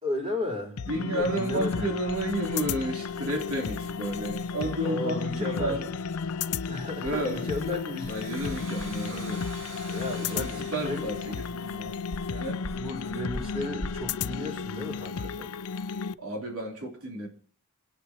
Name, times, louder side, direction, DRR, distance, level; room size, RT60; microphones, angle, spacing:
voice 1, 0.0-1.8 4.8-5.8 6.7-8.5 9.9-11.0 12.7-15.5, left 2 dB, 25° right, 4.0 m, -34 dB
sound 1, 0.8-16.1, left 5 dB, 90° left, 0.5 m, -33 dB
Writing, 0.8-15.6, left 1 dB, 30° left, 2.3 m, -46 dB
voice 2, 0.9-5.9 7.0-7.4 8.1-9.4 10.3-12.0 12.3-12.6 16.2-17.3, right 1 dB, 75° right, 3.3 m, -32 dB
Domestic sounds home sounds, 7.9-12.4, right 3 dB, 60° right, 2.3 m, -46 dB
28.0 x 9.6 x 2.9 m
head